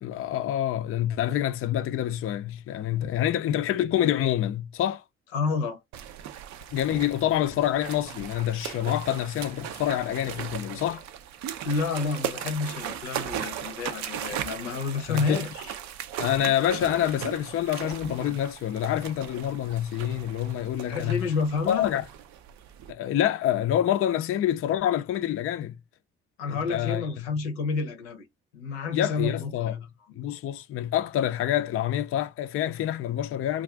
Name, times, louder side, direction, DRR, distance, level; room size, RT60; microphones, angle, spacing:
voice 1, 0.0-5.0 6.7-11.0 15.1-15.4 16.2-21.3 21.7-22.0 22.9-25.8 26.5-27.2 28.9-29.8 30.2-33.6, left 11 dB, 45° left, 0.4 m, -27 dB
voice 2, 5.3-5.8 11.6-15.7 20.9-21.9 26.4-28.2 28.5-29.8, left 4 dB, 85° left, 0.7 m, -29 dB
sound 1, 5.9-22.9, right 10 dB, 65° right, 0.5 m, -38 dB
2.4 x 2.4 x 3.3 m
hypercardioid pair, 45°, 31 cm